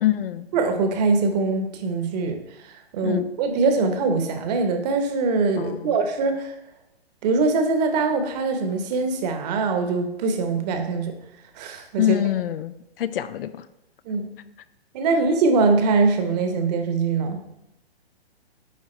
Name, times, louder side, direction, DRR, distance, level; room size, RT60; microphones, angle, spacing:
voice 1, 0.0-0.5 3.0-3.3 5.6-6.0 12.0-13.7, left 12 dB, 65° left, 14 dB, 0.5 m, -25 dB
voice 2, 0.5-2.4 2.6-6.5 7.2-11.1 11.6-12.0 14.0-14.3 14.9-17.4, right 4 dB, 40° right, 5 dB, 1.0 m, -22 dB
9.5 x 3.5 x 3.2 m, 0.87 s
hypercardioid pair, 130°, 31 cm